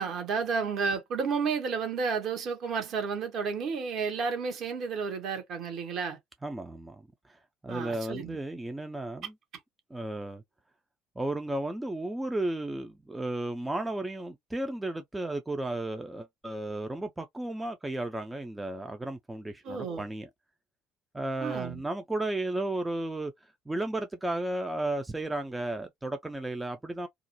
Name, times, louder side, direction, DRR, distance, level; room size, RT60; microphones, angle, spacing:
voice 1, 0.0-6.2 7.7-8.4 19.6-20.0 21.4-21.8, right 5 dB, 50° right, 0.8 m, -31 dB
voice 2, 6.4-7.4 7.6-9.3 9.9-10.4 11.2-20.3 21.1-23.3 23.7-27.1, right 2 dB, 10° right, 0.4 m, -34 dB
2.4 x 2.0 x 2.9 m
figure-of-eight pair, 55°, 0 cm